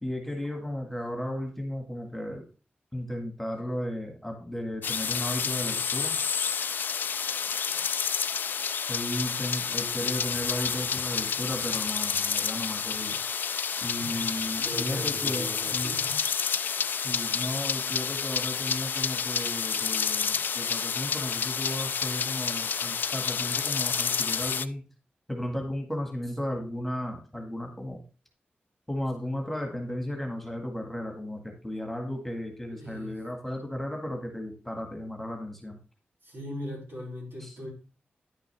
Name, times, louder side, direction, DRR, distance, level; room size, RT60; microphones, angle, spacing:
voice 1, 0.0-2.4 2.9-6.2 8.9-13.2 13.8-15.9 16.9-24.8 25.3-28.0 28.9-35.8 37.4-37.5, left 1 dB, 5° left, 3 dB, 1.6 m, -34 dB
sound 1, 4.8-24.6, left 6 dB, 65° left, 0.3 m, -29 dB
voice 2, 14.6-16.2 16.8-16.9 32.7-33.2 36.2-37.7, equal, 90° right, -3 dB, 4.7 m, -39 dB
10.0 x 6.1 x 3.3 m, 0.33 s
wide cardioid pair, 170°, 4 cm